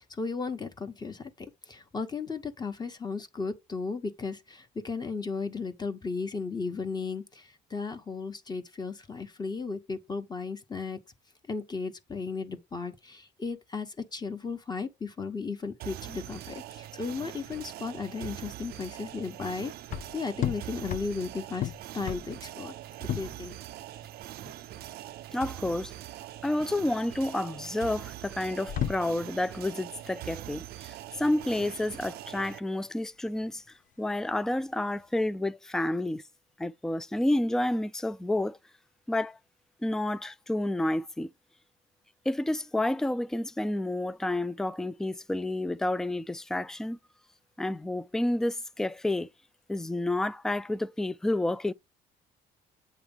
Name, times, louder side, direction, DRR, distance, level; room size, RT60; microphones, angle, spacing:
voice 1, 0.1-11.0 11.5-22.7 23.1-23.6, left 4 dB, 25° left, 1.1 m, -35 dB
sound 1, 15.8-32.6, right 14 dB, 65° right, 0.5 m, -43 dB
sound 2, 17.0-35.2, left 11 dB, 50° left, 0.6 m, -39 dB
voice 2, 25.3-25.9 26.4-33.6 34.0-36.2 36.6-38.6 39.1-39.4 39.8-41.3 42.3-47.0 47.6-49.3 49.7-51.7, left 1 dB, 5° left, 0.3 m, -30 dB
8.0 x 3.1 x 5.4 m
cardioid pair, 110°, 17 cm